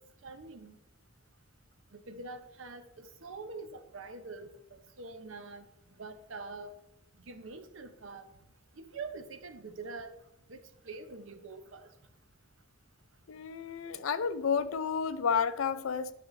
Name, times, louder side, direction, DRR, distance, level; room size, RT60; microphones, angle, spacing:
voice 1, 0.2-0.8 1.9-4.5 5.0-5.7 6.0-6.7 7.3-8.2 8.8-10.1 10.5-10.6 10.8-11.9, right 3 dB, 75° right, 0.8 m, -44 dB
voice 2, 13.3-16.1, left 6 dB, 90° left, 0.5 m, -31 dB
9.7 x 6.3 x 3.2 m
head